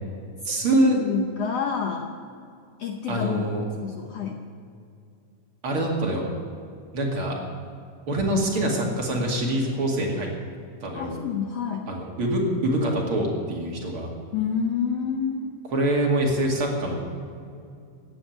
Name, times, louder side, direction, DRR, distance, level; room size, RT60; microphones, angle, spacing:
voice 1, 0.4-1.0 3.1-3.7 5.6-6.2 6.9-7.4 8.1-10.3 10.8-11.1 11.9-14.1 15.7-17.0, right 1 dB, 45° right, -1 dB, 2.8 m, -24 dB
voice 2, 0.9-2.1 2.8-3.5 3.8-4.4 10.9-11.9 14.3-15.5, left 7 dB, 65° left, 3 dB, 1.7 m, -28 dB
15.5 x 9.2 x 9.2 m, 2.4 s
omnidirectional pair, 3.8 m